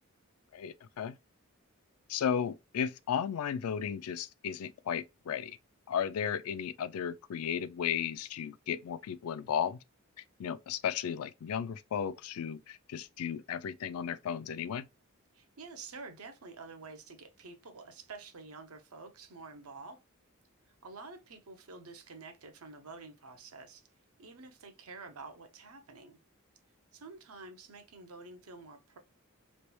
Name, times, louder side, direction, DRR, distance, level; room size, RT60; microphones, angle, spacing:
voice 1, 0.5-1.2 2.1-5.6 5.9-9.8 10.4-14.9, left 8 dB, 80° left, 0.4 m, -34 dB
voice 2, 15.3-20.0 20.7-23.9 24.2-26.2 26.9-29.0, right 3 dB, 85° right, 0.8 m, -49 dB
3.2 x 3.0 x 3.1 m
head